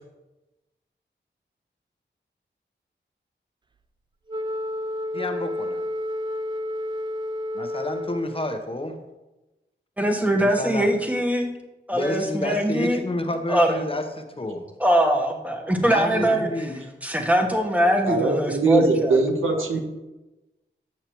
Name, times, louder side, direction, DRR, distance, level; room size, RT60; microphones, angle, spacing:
Wind instrument woodwind instrument, 4.3-8.7, left 1 dB, 25° right, 0.4 m, -30 dB
voice 1, 5.1-5.8 7.5-9.0 10.3-10.9 11.9-14.7 15.8-16.9 18.4-18.5, left 1 dB, 25° left, 6 dB, 0.9 m, -30 dB
voice 2, 10.0-11.5 11.9-13.0 13.5-13.8 14.8-16.7 17.0-19.2 19.7-19.8, equal, 5° right, 2 dB, 1.2 m, -22 dB
voice 3, 18.0-19.8, right 3 dB, 90° right, 3 dB, 1.0 m, -22 dB
8.2 x 6.5 x 3.0 m, 1.1 s
cardioid pair, 50°, 20 cm